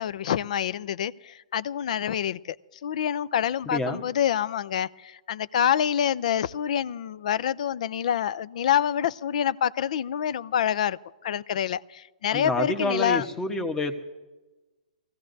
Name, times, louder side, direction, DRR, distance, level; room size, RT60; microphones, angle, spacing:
voice 1, 0.0-2.6 2.8-13.3, left 9 dB, 60° left, 0.4 m, -27 dB
voice 2, 3.7-4.0 12.3-14.0, left 2 dB, 10° left, 1.1 m, -28 dB
22.0 x 15.0 x 2.7 m
hypercardioid pair, 130°, 4 cm